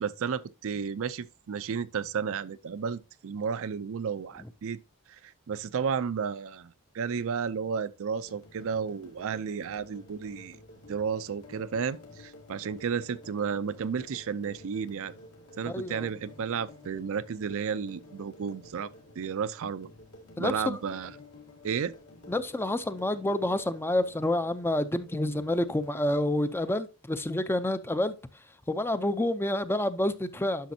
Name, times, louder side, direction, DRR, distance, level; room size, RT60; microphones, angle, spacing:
voice 1, 0.0-4.8 5.1-10.6 10.9-15.1 15.6-18.9 19.2-19.9 20.4-21.1 21.6-21.9, right 6 dB, 65° right, 0.4 m, -32 dB
sound 1, 8.2-26.6, left 2 dB, 75° left, 2.3 m, -51 dB
voice 2, 15.6-16.1 20.4-20.8 22.3-28.2 28.7-30.7, left 1 dB, 10° left, 0.4 m, -28 dB
10.0 x 6.2 x 2.7 m
head